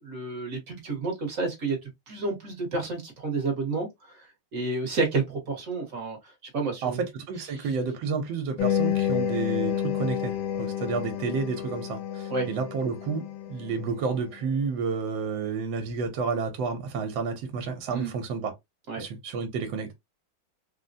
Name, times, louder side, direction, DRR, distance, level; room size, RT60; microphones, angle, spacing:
voice 1, 0.0-4.3 4.5-6.2 6.5-7.0 7.5-7.7 12.3-12.5 17.9-18.1 18.9-19.0, right 3 dB, 50° right, 1.2 m, -30 dB
voice 2, 6.8-18.5 19.0-19.9, right 5 dB, 75° right, 1.4 m, -30 dB
sound 1, 8.6-14.1, left 9 dB, 75° left, 1.4 m, -30 dB
3.9 x 2.1 x 2.5 m
omnidirectional pair, 2.3 m